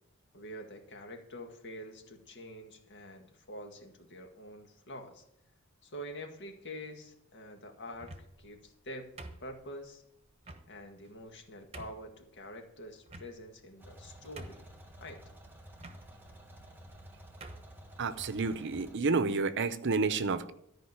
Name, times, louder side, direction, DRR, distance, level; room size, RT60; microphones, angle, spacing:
voice 1, 0.3-5.2 5.8-8.1 8.4-9.1 9.4-10.0 10.7-14.7 15.0-15.2, equal, 55° left, 4 dB, 1.9 m, -46 dB
sound 1, 7.9-8.5 9.2-9.8 10.4-10.7 11.2-11.3 11.7-12.1 13.1-13.6 14.0-14.1 14.4-14.8 15.8-16.0 16.8-17.0 17.4-17.7, right 2 dB, 30° right, 1.1 m, -48 dB
sound 2, 13.8-19.0, right 1 dB, 10° right, 1.5 m, -52 dB
voice 2, 18.0-20.5, right 4 dB, 60° right, 12 dB, 0.7 m, -30 dB
13.5 x 5.2 x 8.1 m, 0.78 s
head